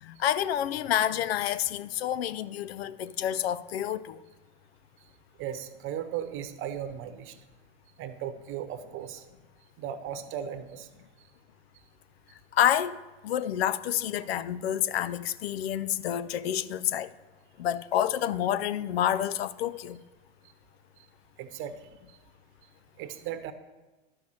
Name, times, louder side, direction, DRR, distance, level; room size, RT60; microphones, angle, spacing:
voice 1, 0.0-4.2 12.5-17.1 17.6-20.0, left 11 dB, 85° left, 0.5 m, -28 dB
voice 2, 5.4-7.4 8.0-9.2 9.8-10.9 14.2-14.3 21.0-21.1 21.4-21.7 22.1-22.2 23.0-23.5, right 9 dB, 40° right, 0.9 m, -37 dB
11.5 x 5.6 x 6.3 m
hypercardioid pair, 105°, 30 cm